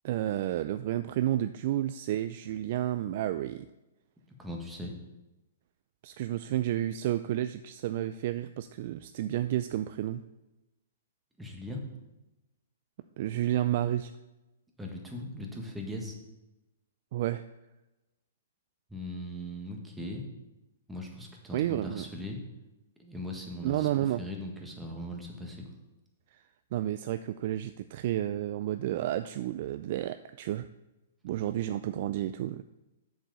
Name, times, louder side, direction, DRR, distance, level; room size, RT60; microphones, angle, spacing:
voice 1, 0.0-3.7 6.0-10.2 13.2-14.1 17.1-17.4 21.5-22.1 23.6-24.2 26.7-30.7 31.2-32.6, right 13 dB, 50° right, 11 dB, 0.3 m, -31 dB
voice 2, 4.4-4.9 11.4-11.8 14.8-16.2 18.9-20.3 20.9-22.4 23.0-23.9 24.2-25.6, left 1 dB, 5° right, 0 dB, 1.6 m, -39 dB
7.4 x 4.8 x 6.8 m, 1.0 s
hypercardioid pair, 135°, 0 cm